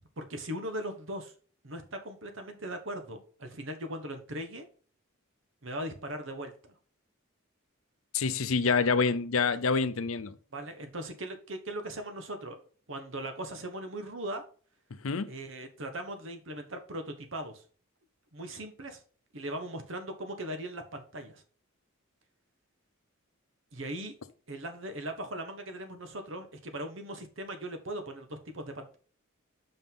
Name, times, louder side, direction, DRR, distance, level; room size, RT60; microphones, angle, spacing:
voice 1, 0.2-1.3 1.6-4.7 5.6-6.7 10.5-12.6 12.9-14.4 15.2-17.6 18.3-19.0 19.3-21.4 23.7-24.1 24.5-29.0, right 1 dB, 60° right, 1.3 m, -39 dB
voice 2, 8.1-10.4 15.0-15.3, left 5 dB, 75° left, 0.7 m, -27 dB
5.6 x 5.4 x 5.6 m
head